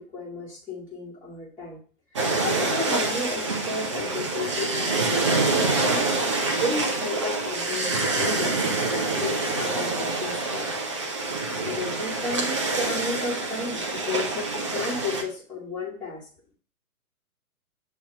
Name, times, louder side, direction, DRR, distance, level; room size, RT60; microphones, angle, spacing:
voice 1, 0.0-1.8 2.1-6.0 6.6-7.9 8.1-8.5 8.9-10.7 11.6-16.2, left 2 dB, 5° left, -11 dB, 1.3 m, -33 dB
sound 1, 2.2-15.2, right 3 dB, 20° right, 0.5 m, -26 dB
7.5 x 2.8 x 4.5 m, 0.41 s
figure-of-eight pair, 125°, 44 cm